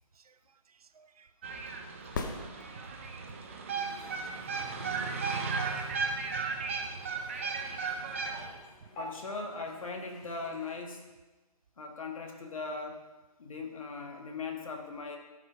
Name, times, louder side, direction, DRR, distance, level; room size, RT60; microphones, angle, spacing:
voice 1, 0.1-1.3 2.9-3.2 3.7-4.5 6.3-7.3 7.9-8.9, right 6 dB, 70° right, 0.6 m, -61 dB
sound 1, 1.4-8.5, right 4 dB, 20° right, 0.5 m, -35 dB
sound 2, 2.1-3.3 7.1-7.2, left 4 dB, 30° left, 0.7 m, -38 dB
sound 3, 3.7-10.8, equal, 15° left, 1.4 m, -52 dB
voice 2, 9.0-11.0 11.8-13.0 13.4-15.2, left 4 dB, 60° left, 1.5 m, -39 dB
12.5 x 5.0 x 5.5 m
hypercardioid pair, 165°, 20 cm